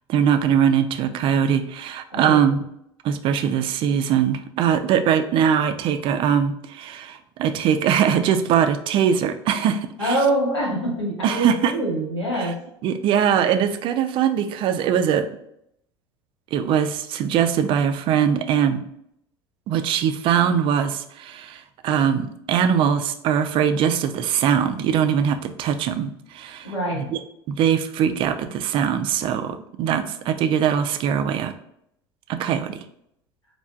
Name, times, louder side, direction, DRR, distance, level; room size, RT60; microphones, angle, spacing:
voice 1, 0.1-2.6 3.0-10.2 11.2-11.7 12.4-12.5 12.8-15.3 16.5-18.8 19.7-27.2 27.5-31.5 32.3-32.8, right 8 dB, 35° right, 8 dB, 0.3 m, -21 dB
voice 2, 2.1-2.5 10.0-12.5 26.6-27.1, right 1 dB, 85° left, -4 dB, 1.1 m, -24 dB
4.3 x 2.3 x 2.3 m, 0.74 s
figure-of-eight pair, 70°, 14 cm